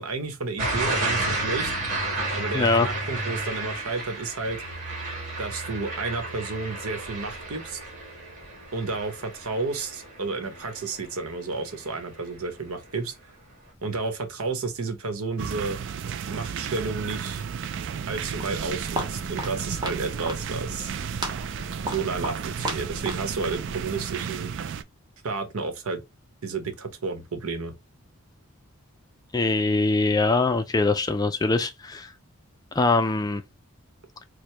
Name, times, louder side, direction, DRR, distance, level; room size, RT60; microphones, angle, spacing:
voice 1, 0.0-1.7 2.3-4.6 5.4-7.8 8.7-13.1 13.8-15.8 16.3-17.4 18.1-20.9 21.9-24.5 25.2-26.0 26.4-27.7, right 4 dB, 80° right, 1.0 m, -31 dB
sound 1, 0.6-11.4 11.8-12.2, right 2 dB, 35° right, 1.7 m, -32 dB
voice 2, 2.5-2.9 29.3-32.1 32.8-33.4, left 3 dB, 20° left, 0.3 m, -22 dB
sound 2, 15.4-24.8, right 7 dB, 55° right, 0.3 m, -33 dB
Walk footsteps, 18.1-24.1, right 1 dB, 20° right, 0.9 m, -36 dB
4.6 x 2.2 x 3.2 m
head